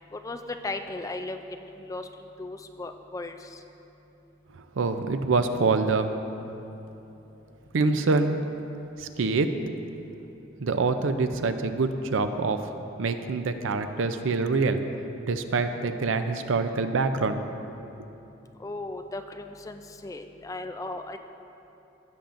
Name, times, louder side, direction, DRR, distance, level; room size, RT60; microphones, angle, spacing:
voice 1, 0.1-1.4 1.7-3.6 18.6-21.2, left 2 dB, 15° left, 7 dB, 0.3 m, -36 dB
voice 2, 4.8-6.1 7.7-8.4 9.0-9.5 10.6-12.6 13.0-14.8 15.3-17.4, right 3 dB, 90° right, 9 dB, 0.5 m, -25 dB
16.0 x 7.0 x 2.6 m, 3.0 s
head